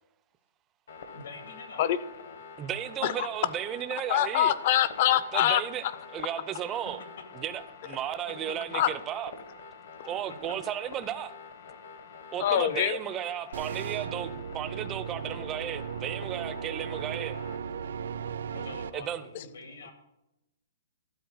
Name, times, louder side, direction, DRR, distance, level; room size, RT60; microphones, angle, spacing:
sound 1, 0.9-17.6, left 5 dB, 65° left, 1.3 m, -47 dB
voice 1, 1.1-1.8 8.5-8.6 10.5-10.6 12.4-12.7 18.5-19.9, left 4 dB, 80° left, 5 dB, 2.3 m, -45 dB
voice 2, 2.6-4.5 5.3-5.8 6.1-7.0 7.3-9.3 10.1-11.3 12.3-17.4 18.9-19.3, right 11 dB, 15° right, 13 dB, 0.4 m, -34 dB
voice 3, 4.1-6.0 8.7-8.9 12.4-13.0 19.3-19.4, left 11 dB, 35° left, 16 dB, 0.5 m, -25 dB
sound 2, 13.5-18.9, right 7 dB, 70° right, 0.5 m, -36 dB
12.0 x 4.1 x 7.9 m, 0.92 s
hypercardioid pair, 175°, 0 cm